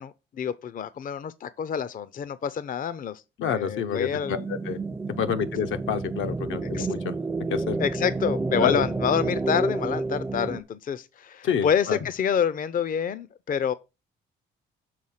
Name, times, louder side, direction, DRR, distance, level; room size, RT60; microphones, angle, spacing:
voice 1, 0.0-4.5 6.7-6.9 7.8-13.7, left 7 dB, 45° left, 0.5 m, -28 dB
voice 2, 3.4-4.4 4.7-4.8 5.2-7.1 7.5-7.8 8.5-8.8 11.4-12.0, left 7 dB, 80° left, 0.8 m, -28 dB
sound 1, 4.2-10.6, right 3 dB, 10° right, 0.4 m, -30 dB
6.5 x 3.8 x 5.7 m
cardioid pair, 90°, 20 cm